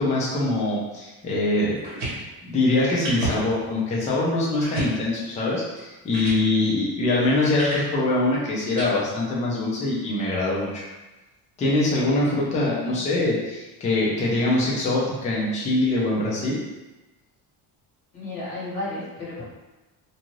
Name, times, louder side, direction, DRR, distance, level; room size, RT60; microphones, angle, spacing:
voice 1, 0.0-2.0 2.4-10.8 11.6-16.6, left 2 dB, 15° left, -5 dB, 0.3 m, -23 dB
sound 1, 1.8-2.2 3.0-3.4 3.9-4.0 4.6-5.0 5.8-5.9 6.1-6.4 7.6-7.9 8.8-8.9, right 2 dB, 60° right, 1.1 m, -30 dB
voice 2, 6.5-6.8 12.7-13.0 18.1-19.4, left 2 dB, 40° left, -8 dB, 1.3 m, -34 dB
2.6 x 2.3 x 3.0 m, 1.1 s
cardioid pair, 170°, 47 cm